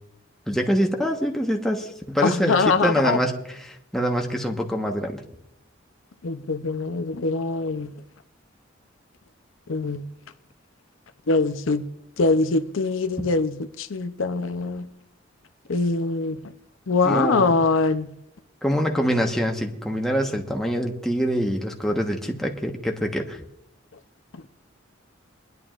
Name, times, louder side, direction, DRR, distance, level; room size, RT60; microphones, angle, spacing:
voice 1, 0.5-5.2 17.0-17.6 18.6-23.4, equal, ahead, 1.2 m, -25 dB
voice 2, 2.2-3.2 6.2-7.9 9.7-10.0 11.3-11.9 12.2-14.9 15.7-16.4 16.9-18.1, left 3 dB, 80° left, 0.6 m, -23 dB
29.5 x 11.0 x 2.5 m
head